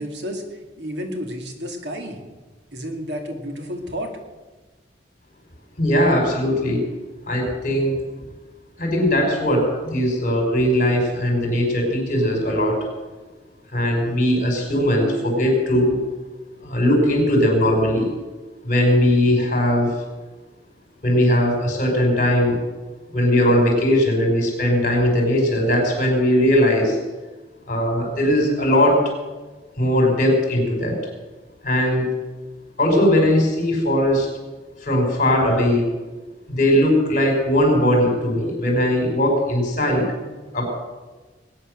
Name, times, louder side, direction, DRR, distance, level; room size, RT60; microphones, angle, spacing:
voice 1, 0.0-2.2 2.7-4.1, equal, 75° right, 3 dB, 2.3 m, -31 dB
voice 2, 5.8-6.8 7.3-8.0 8.8-12.9 13.7-16.0 16.6-18.1 18.6-19.9 21.0-22.6 23.1-27.0 27.7-29.1 29.8-31.0 31.6-32.1 32.8-34.3 34.8-35.9 36.5-40.1 40.5-40.7, left 1 dB, 45° left, 1 dB, 5.3 m, -19 dB
19.5 x 9.8 x 6.6 m, 1.3 s
head